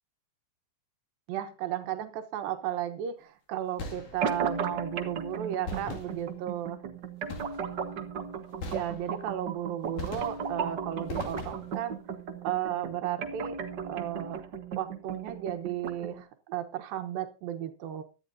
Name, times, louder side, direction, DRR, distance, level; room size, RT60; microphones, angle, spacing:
voice 1, 1.3-6.8 8.7-12.0 12.4-13.6 13.8-14.5 14.8-18.0, right 11 dB, 85° right, 8 dB, 2.9 m, -34 dB
sound 1, 3.8-4.5 5.7-6.6 7.3-7.9 8.6-9.4 10.0-10.7 11.1-11.9, left 3 dB, 65° left, 3.8 m, -41 dB
sound 2, 4.2-16.2, right 6 dB, 65° right, 1.0 m, -36 dB
19.0 x 12.5 x 2.7 m, 0.33 s
omnidirectional pair, 4.0 m